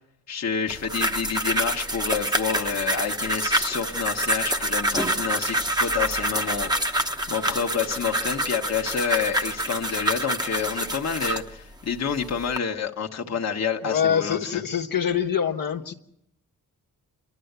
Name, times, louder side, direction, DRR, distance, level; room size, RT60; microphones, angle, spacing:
voice 1, 0.3-14.6, left 6 dB, 50° left, 1.3 m, -28 dB
sound 1, 0.7-11.5 12.1-12.6, right 1 dB, 10° right, 1.1 m, -27 dB
voice 2, 13.8-15.9, left 8 dB, 70° left, 1.3 m, -25 dB
28.5 x 12.0 x 8.1 m
wide cardioid pair, 135°, 35 cm